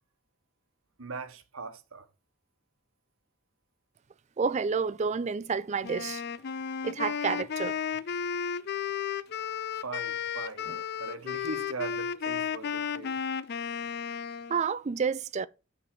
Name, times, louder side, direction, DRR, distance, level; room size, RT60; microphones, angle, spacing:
voice 1, 1.0-2.1 9.8-10.7 11.0-13.2, right 3 dB, 80° right, 1.1 m, -40 dB
voice 2, 4.4-6.2 6.8-7.7 10.7-10.8 14.5-15.5, right 5 dB, 35° right, 0.4 m, -29 dB
Wind instrument woodwind instrument, 5.8-14.6, left 7 dB, 50° left, 0.4 m, -33 dB
8.5 x 4.0 x 5.9 m
head